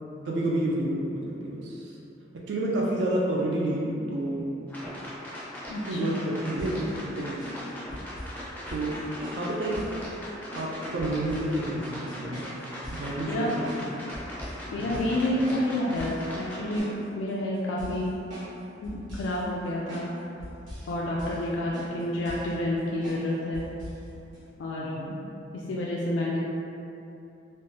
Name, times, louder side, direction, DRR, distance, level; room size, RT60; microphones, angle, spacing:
voice 1, 0.3-1.9 2.3-4.5 5.9-6.9 7.2-7.4 8.0-8.1 8.7-9.0 9.4-9.9 10.5-12.4 12.9-13.9 14.8-15.1 24.8-25.2, right 1 dB, 65° right, -3 dB, 0.3 m, -29 dB
sound 1, 4.7-16.8, equal, 10° left, 0.4 m, -40 dB
sound 2, 6.6-8.4 8.7-8.9 9.2-10.0 10.5-11.5 11.8-13.1 13.6-13.8 14.1-14.6 14.9-15.2 15.4-16.2 16.5-17.3 17.8-18.6 18.8-19.4 19.9-20.1 20.4-20.9 21.2-21.5 21.7-22.5 23.0-23.3 23.5-24.0 24.3-24.4, equal, 80° right, 1.0 m, -41 dB
voice 2, 14.7-16.9 17.2-18.1 18.8-20.1 20.9-23.6 24.6-25.0 25.7-26.4, left 1 dB, 80° left, -4 dB, 0.3 m, -29 dB
3.2 x 2.1 x 2.8 m, 2.7 s
head